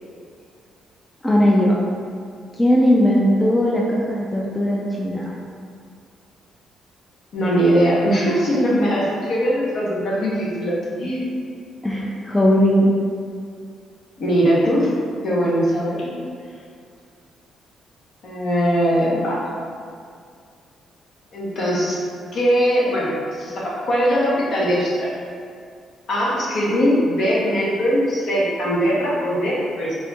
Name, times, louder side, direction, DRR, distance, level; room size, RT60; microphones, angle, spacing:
voice 1, 1.2-1.8 2.5-5.4 11.8-12.9, equal, 15° left, -3 dB, 0.4 m, -18 dB
voice 2, 7.3-11.3 14.2-14.9 15.2-16.2 18.2-19.5 21.3-22.0 22.3-25.1 26.1-30.0, equal, 60° left, -6 dB, 0.9 m, -20 dB
4.2 x 2.6 x 2.3 m, 2.2 s
cardioid pair, 90°, 0 cm